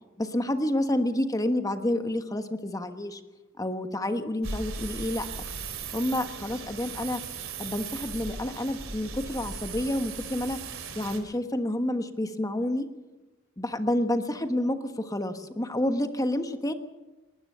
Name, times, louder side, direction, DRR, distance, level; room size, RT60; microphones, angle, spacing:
voice 1, 0.2-3.2 3.6-5.5 5.9-7.2 7.6-10.6 10.9-12.9 13.6-16.7, left 1 dB, 15° left, 8 dB, 1.3 m, -29 dB
sound 1, 4.4-11.2, right 5 dB, 70° right, 3.2 m, -38 dB
20.0 x 19.5 x 6.8 m, 1.1 s
head